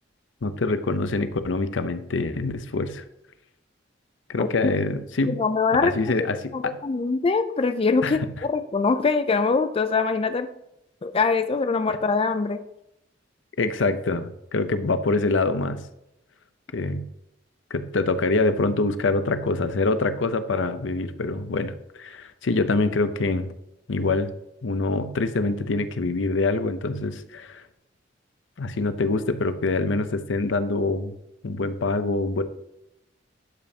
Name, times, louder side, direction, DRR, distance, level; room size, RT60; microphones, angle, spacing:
voice 1, 0.4-3.0 4.3-5.4 5.8-6.8 8.0-8.2 13.6-15.8 16.7-17.1 17.7-23.5 23.9-24.3 24.6-27.6 28.6-31.1 31.4-32.4, left 3 dB, 75° left, 11 dB, 0.7 m, -25 dB
voice 2, 4.4-4.7 5.3-5.9 6.5-10.5 11.0-12.6, left 4 dB, 30° left, 9 dB, 0.4 m, -23 dB
11.5 x 5.3 x 2.8 m, 0.84 s
head